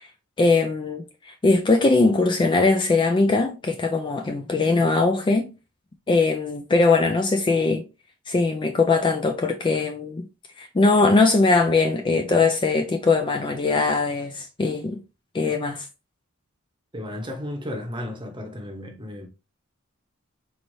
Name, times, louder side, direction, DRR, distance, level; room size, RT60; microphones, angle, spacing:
voice 1, 0.4-5.5 6.1-7.8 8.3-10.3 10.6-15.0 15.3-15.9, left 3 dB, 20° left, 0.3 m, -21 dB
voice 2, 16.9-19.3, left 1 dB, 20° right, 0.8 m, -34 dB
4.2 x 3.2 x 2.6 m
head